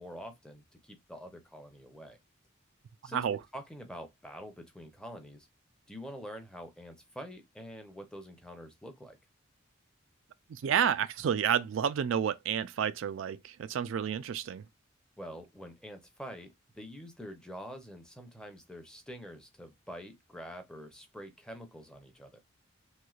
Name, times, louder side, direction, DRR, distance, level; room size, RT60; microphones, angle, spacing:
voice 1, 0.0-2.2 3.0-3.3 3.5-5.5 5.9-9.2 15.2-22.4, equal, 5° left, 0.6 m, -46 dB
voice 2, 10.5-14.6, right 8 dB, 70° right, 0.3 m, -30 dB
3.1 x 3.0 x 2.3 m
head